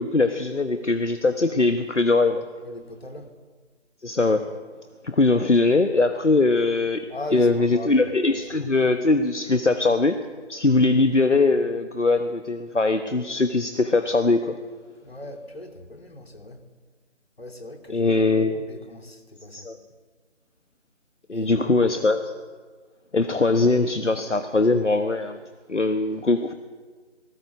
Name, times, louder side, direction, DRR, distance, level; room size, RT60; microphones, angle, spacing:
voice 1, 0.0-2.4 4.0-4.5 5.0-7.0 7.3-10.2 10.5-14.5 17.9-18.6 19.5-19.8 21.3-22.2 23.1-25.4 25.7-26.5, left 3 dB, 70° left, 8 dB, 1.3 m, -21 dB
voice 2, 2.6-3.3 7.1-8.5 15.0-16.6 17.4-19.7 21.3-22.1, left 1 dB, 55° left, 5 dB, 2.6 m, -39 dB
19.0 x 18.0 x 8.2 m, 1.5 s
figure-of-eight pair, 165°, 37 cm